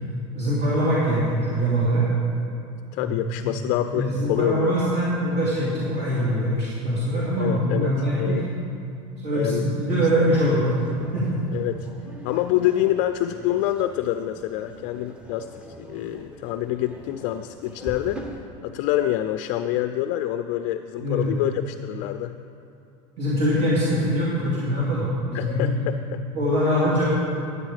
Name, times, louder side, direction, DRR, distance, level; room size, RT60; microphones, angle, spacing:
voice 1, 0.3-2.1 3.0-3.5 3.9-8.4 9.2-10.7 11.1-11.4 21.0-21.3 23.2-25.8 26.3-27.1, equal, 45° right, -8 dB, 2.5 m, -23 dB
voice 2, 2.9-4.8 7.4-7.9 8.2-8.5 9.3-9.7 10.1-10.3 11.5-11.9 12.2-18.2 18.6-22.4 25.3-26.2, left 13 dB, 55° left, 9 dB, 0.4 m, -26 dB
sound 1, 9.9-18.4, equal, 5° right, 0.8 m, -43 dB
9.6 x 9.0 x 4.9 m, 2.6 s
supercardioid pair, 135°, 16 cm